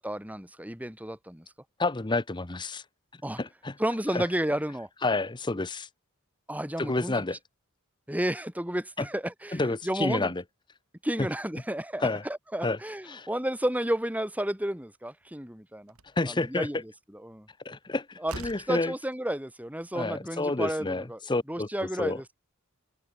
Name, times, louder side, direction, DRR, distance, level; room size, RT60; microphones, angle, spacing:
voice 1, 0.0-1.4 3.2-3.4 3.8-4.9 6.5-7.2 8.1-10.3 11.0-15.9 16.3-17.5 18.2-18.4 18.7-21.2 21.5-22.3, right 1 dB, 5° right, 3.3 m, -32 dB
voice 2, 1.8-2.8 3.4-3.7 4.1-4.2 5.0-5.9 6.8-7.4 9.0-9.1 9.5-10.4 12.0-12.2 12.6-12.8 13.1-13.3 16.2-16.8 17.6-18.9 19.9-22.2, left 2 dB, 20° left, 0.8 m, -29 dB
Slam, 15.2-15.3 15.9-16.2 17.7-17.8 18.2-18.8, right 2 dB, 85° right, 6.5 m, -42 dB
head